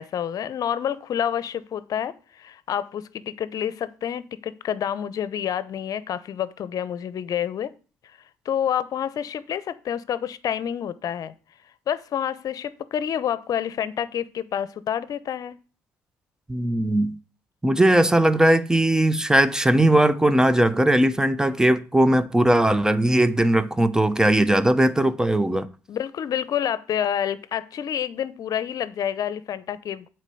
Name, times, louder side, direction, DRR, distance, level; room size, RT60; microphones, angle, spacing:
voice 1, 0.0-7.7 8.4-11.3 11.9-15.6 25.9-30.1, left 9 dB, 55° left, 0.7 m, -28 dB
voice 2, 16.5-17.2 17.6-25.7, right 1 dB, 10° right, 0.9 m, -19 dB
8.2 x 4.5 x 6.9 m
hypercardioid pair, 55°, 7 cm